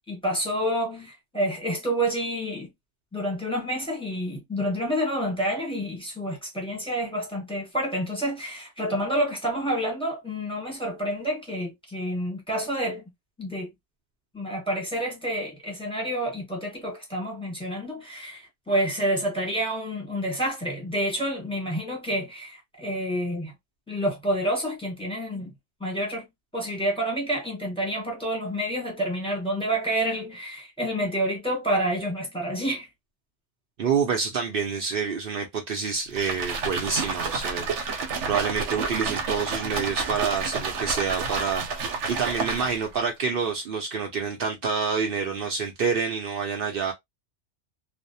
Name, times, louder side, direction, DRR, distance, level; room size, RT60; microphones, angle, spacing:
voice 1, 0.0-2.7 3.1-13.0 13.4-13.7 14.3-23.5 23.9-25.5 25.8-26.3 26.5-32.9, right 1 dB, 5° left, 1.0 m, -28 dB
voice 2, 33.8-37.7 38.3-46.9, right 5 dB, 60° right, 0.7 m, -27 dB
sound 1, 36.1-43.0, right 4 dB, 85° right, 0.9 m, -30 dB
2.5 x 2.0 x 2.6 m
omnidirectional pair, 1.2 m